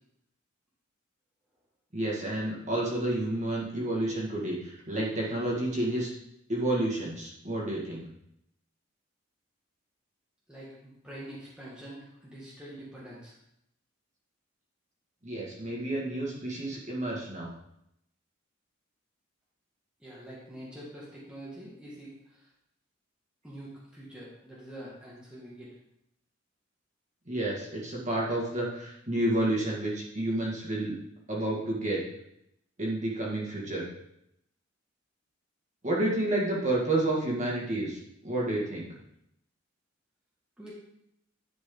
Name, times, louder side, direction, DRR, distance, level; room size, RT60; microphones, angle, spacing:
voice 1, 1.9-6.1 6.5-8.0 15.2-17.5 27.3-31.0 31.3-32.0 32.8-33.8 35.8-38.9, right 1 dB, 35° right, -4 dB, 2.1 m, -30 dB
voice 2, 10.5-13.4 20.0-22.5 23.4-25.7 40.6-40.7, right 1 dB, 5° right, -7 dB, 1.7 m, -45 dB
10.5 x 5.1 x 3.9 m, 0.78 s
head